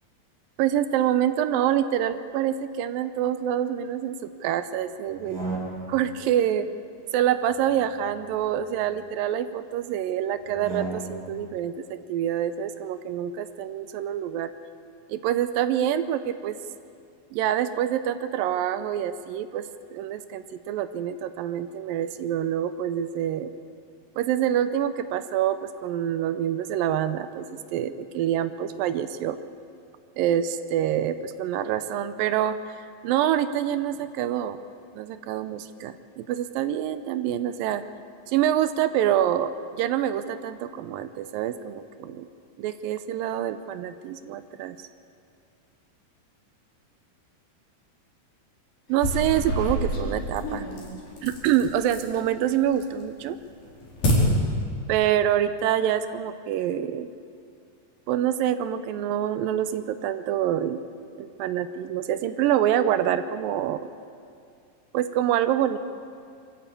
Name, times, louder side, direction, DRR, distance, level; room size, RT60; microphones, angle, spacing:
voice 1, 0.6-5.4 5.9-6.7 7.1-14.5 15.1-16.6 17.3-23.5 24.2-29.4 30.2-32.8 33.0-34.6 35.0-37.8 38.3-42.3 42.6-44.8 48.9-50.6 51.2-53.4 54.9-57.1 58.1-60.8 61.2-63.9 64.9-65.8, right 10 dB, 85° right, 11 dB, 2.4 m, -26 dB
sound 1, 5.1-6.1 7.4-9.1 10.4-11.4, right 3 dB, 25° right, 4.3 m, -36 dB
sound 2, 48.9-52.2 52.6-53.1 53.5-54.1, equal, 75° left, 6.0 m, -29 dB
23.5 x 15.0 x 8.4 m, 2.4 s
omnidirectional pair, 4.0 m